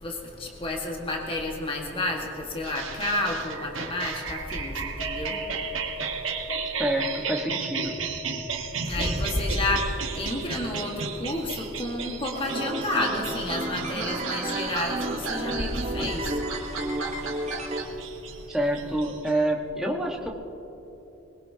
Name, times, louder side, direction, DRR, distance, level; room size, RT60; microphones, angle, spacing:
voice 1, 0.0-5.4 8.8-9.9 10.1-16.3, left 1 dB, 25° left, 0 dB, 1.7 m, -30 dB
sound 1, 2.6-19.5, right 5 dB, 85° right, 1.4 m, -34 dB
voice 2, 6.8-8.0 18.5-20.3, right 1 dB, ahead, -1 dB, 1.5 m, -27 dB
sound 2, 12.3-17.8, right 1 dB, 35° right, 1.2 m, -32 dB
21.0 x 21.0 x 2.9 m, 3.0 s
head